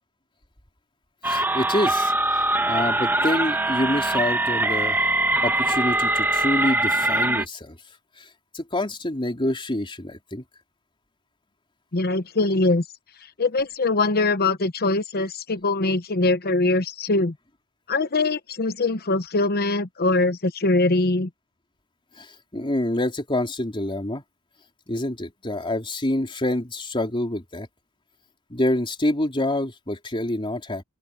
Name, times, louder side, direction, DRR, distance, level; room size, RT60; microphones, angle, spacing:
sound 1, 1.2-7.4, right 2 dB, 10° right, 1.5 m, -22 dB
voice 1, 1.3-2.1 2.6-5.0 5.4-7.8 8.2-8.3 8.5-10.4 22.2-24.2 24.9-27.7 28.5-30.8, left 1 dB, 25° left, 3.8 m, -26 dB
voice 2, 11.9-12.8 13.4-17.3 17.9-21.3, left 2 dB, 45° left, 1.0 m, -22 dB
open air
head